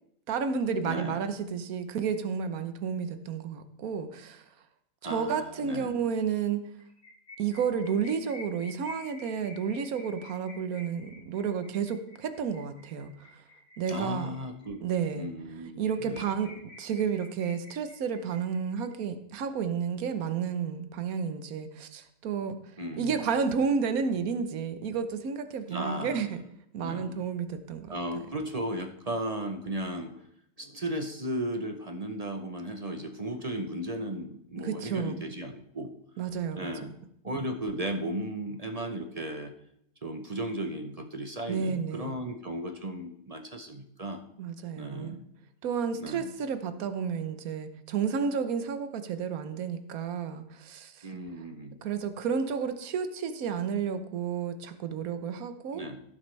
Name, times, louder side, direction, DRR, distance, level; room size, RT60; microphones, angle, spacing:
voice 1, 0.3-4.4 5.0-6.6 7.4-13.1 13.8-14.3 14.8-15.3 15.8-16.5 16.8-22.6 23.0-26.4 26.7-27.9 34.6-35.1 36.2-36.7 41.5-42.1 44.4-45.2 45.6-51.1 51.8-55.8, right 6 dB, 75° right, 9 dB, 1.3 m, -31 dB
voice 2, 0.8-1.3 5.0-6.0 13.9-14.8 15.2-16.2 22.8-23.2 25.7-26.3 26.8-27.2 27.9-30.3 30.6-35.9 36.6-37.0 37.2-39.5 40.0-44.2 44.8-45.2 46.0-46.3 51.0-51.8 55.7-56.0, right 1 dB, 35° right, 5 dB, 0.7 m, -35 dB
sound 1, 6.8-14.7 15.1-15.2 15.5-15.6 15.8-18.9, left 2 dB, 40° left, 2.0 m, -50 dB
17.5 x 7.1 x 3.3 m, 0.73 s
omnidirectional pair, 1.5 m